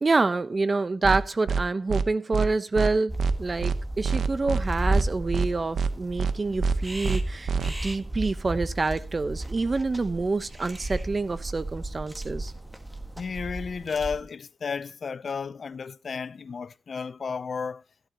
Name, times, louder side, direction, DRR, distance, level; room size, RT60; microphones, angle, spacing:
voice 1, 0.0-12.5, right 3 dB, 35° right, 1.0 m, -27 dB
sound 1, 1.0-1.2 1.5-1.6 1.9-2.0 2.3-2.5 2.8-2.9 3.2-3.3 3.6-3.8 4.0-4.6 4.9-5.0 5.3-5.5 5.8-5.9 6.2-6.3 6.6-6.8 7.0-7.2 7.5-7.7, right 5 dB, 85° right, 1.0 m, -25 dB
sound 2, 3.1-14.2, right 1 dB, 10° right, 1.7 m, -34 dB
voice 2, 13.2-17.8, left 5 dB, 60° left, 0.6 m, -33 dB
16.5 x 11.5 x 2.9 m
wide cardioid pair, 95°, 0 cm